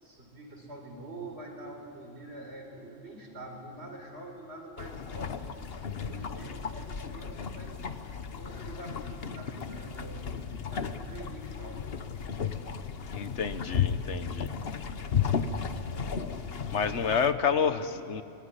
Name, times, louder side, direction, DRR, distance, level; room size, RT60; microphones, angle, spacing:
voice 1, 0.0-5.3 6.1-8.0 8.3-11.8 16.2-16.5, right 2 dB, 70° right, 2 dB, 4.8 m, -45 dB
sail-boat-inside, 4.8-17.3, left 6 dB, 60° left, 1.3 m, -34 dB
voice 2, 13.1-14.5 16.7-18.2, left 6 dB, 80° left, 12 dB, 1.4 m, -29 dB
25.0 x 22.0 x 10.0 m, 2.6 s
omnidirectional pair, 1.2 m